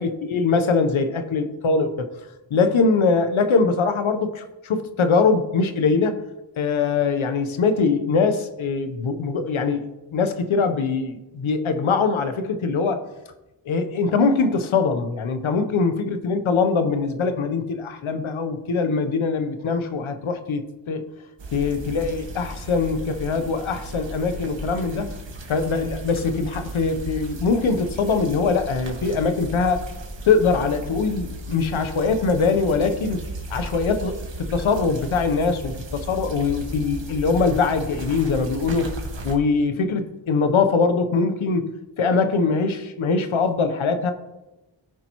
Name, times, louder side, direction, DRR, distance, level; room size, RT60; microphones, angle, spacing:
voice 1, 0.0-2.1 2.5-6.2 6.6-13.1 13.7-21.0 21.5-25.1 25.5-29.9 30.2-39.0 39.2-44.1, left 4 dB, 90° left, 9 dB, 0.9 m, -22 dB
sound 1, 21.4-39.4, right 1 dB, 65° right, 1.7 m, -35 dB
16.0 x 5.4 x 3.0 m, 1.0 s
cardioid pair, 60°, 47 cm